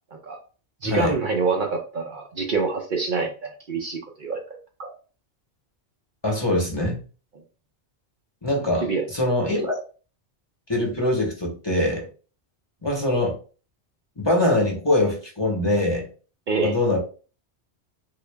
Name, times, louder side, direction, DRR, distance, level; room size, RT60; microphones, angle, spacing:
voice 1, 0.8-4.4 4.8-4.9 8.8-9.0 16.5-16.7, right 4 dB, 55° right, 1 dB, 0.7 m, -26 dB
voice 2, 6.2-7.0 8.4-9.8 10.7-12.0 12.8-13.4 14.2-16.1 16.6-17.0, left 1 dB, 25° left, -1 dB, 0.9 m, -23 dB
3.8 x 2.4 x 3.3 m, 0.37 s
omnidirectional pair, 1.1 m